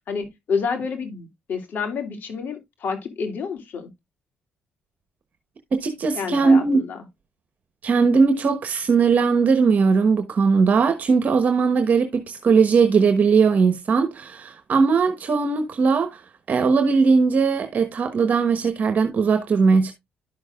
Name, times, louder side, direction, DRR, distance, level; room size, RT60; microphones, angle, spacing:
voice 1, 0.1-3.9 6.1-7.0, left 5 dB, 65° left, 2.6 m, -29 dB
voice 2, 5.7-6.8 7.8-16.2 16.5-19.9, right 5 dB, 50° right, 1.1 m, -19 dB
12.0 x 6.4 x 2.4 m
cardioid pair, 90°, 3 cm